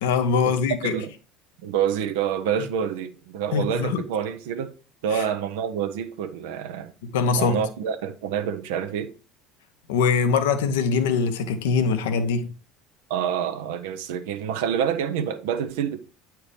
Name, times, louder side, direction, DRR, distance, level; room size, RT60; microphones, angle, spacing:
voice 1, 0.0-0.9 3.5-4.0 5.1-5.2 7.0-7.6 9.9-12.5, left 5 dB, 70° left, 0.8 m, -22 dB
voice 2, 1.6-4.7 5.0-6.9 7.4-9.1 13.1-16.0, right 8 dB, 70° right, 0.6 m, -27 dB
8.7 x 4.5 x 3.3 m
figure-of-eight pair, 65°, 0 cm